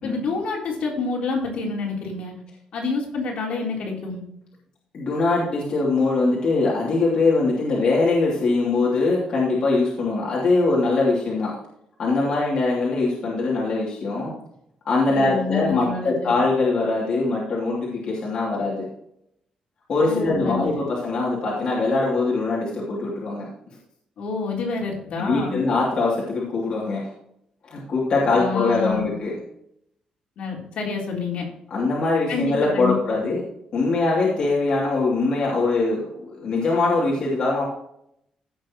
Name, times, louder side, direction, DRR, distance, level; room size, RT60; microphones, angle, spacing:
voice 1, 0.0-2.3 2.7-4.2 15.1-16.3 20.0-20.7 24.2-25.6 28.3-29.1 30.4-31.5 32.3-33.0, left 4 dB, 60° left, -2 dB, 3.8 m, -28 dB
voice 2, 4.9-11.5 12.0-14.4 14.8-18.9 19.9-23.5 25.2-27.1 27.6-29.3 31.7-33.4 33.7-37.6, left 3 dB, 45° left, -5 dB, 2.8 m, -22 dB
16.0 x 6.6 x 3.0 m, 0.74 s
cardioid pair, 175°, 2 cm